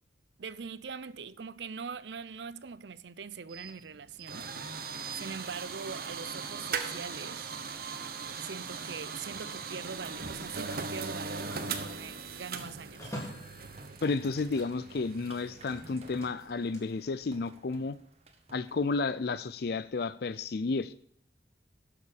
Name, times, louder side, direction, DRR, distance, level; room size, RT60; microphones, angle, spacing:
voice 1, 0.4-7.5 8.4-13.1, right 5 dB, 70° right, 0.6 m, -43 dB
sound 1, 3.5-16.3, right 5 dB, 55° right, 1.1 m, -39 dB
Telephone, 10.5-14.9 15.2-16.8, equal, 15° left, 3.6 m, -48 dB
sound 2, 11.2-19.0, right 2 dB, 35° right, 1.6 m, -55 dB
voice 2, 14.0-18.0 18.5-20.9, left 3 dB, 60° left, 0.5 m, -32 dB
12.0 x 7.0 x 6.5 m
head